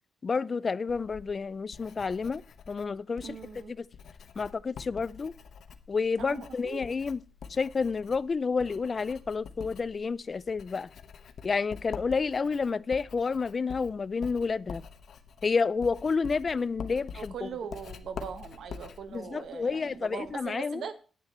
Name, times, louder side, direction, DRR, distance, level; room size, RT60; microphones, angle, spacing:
voice 1, 0.2-3.4 3.7-3.9 4.4-5.3 5.9-7.2 7.5-10.9 11.4-14.8 15.4-17.5 19.1-20.9, left 5 dB, 35° left, 0.4 m, -30 dB
Writing, 0.9-20.4, left 6 dB, 65° left, 1.0 m, -46 dB
voice 2, 3.2-3.7 6.2-6.8 17.1-20.9, right 7 dB, 75° right, 1.4 m, -40 dB
10.0 x 8.9 x 4.3 m
wide cardioid pair, 145°, 0 cm